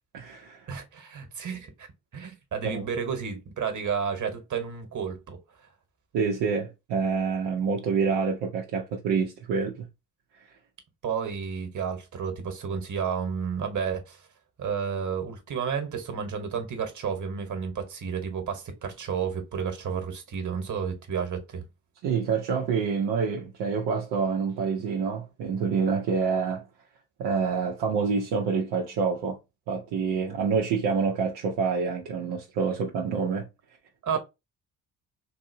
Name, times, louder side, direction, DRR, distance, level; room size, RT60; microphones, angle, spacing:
voice 1, 0.1-0.7 2.6-2.9 6.1-9.9 22.0-26.7 27.2-29.4 29.7-33.5, right 5 dB, 65° right, 0.8 m, -27 dB
voice 2, 0.7-1.9 2.1-5.4 11.0-14.2 14.6-21.6 34.0-34.2, right 6 dB, 40° right, 1.4 m, -31 dB
3.9 x 2.7 x 2.7 m
hypercardioid pair, 50°, 46 cm